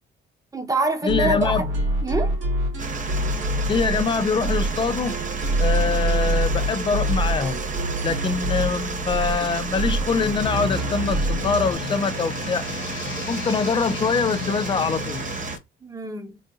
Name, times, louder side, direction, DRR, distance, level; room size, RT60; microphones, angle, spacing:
voice 1, 0.5-1.7 2.0-2.3 15.8-16.4, right 3 dB, 15° right, 1.0 m, -25 dB
voice 2, 1.0-1.7 3.7-5.2 5.6-7.6 8.0-12.6 13.2-15.3, left 5 dB, 25° left, 0.4 m, -24 dB
sound 1, 1.1-11.7, right 1 dB, 70° right, 2.4 m, -26 dB
sound 2, 2.8-15.6, right 5 dB, 40° right, 0.9 m, -32 dB
sound 3, 10.1-15.6, left 9 dB, 80° left, 0.5 m, -34 dB
3.9 x 2.5 x 3.7 m
cardioid pair, 90°, 20 cm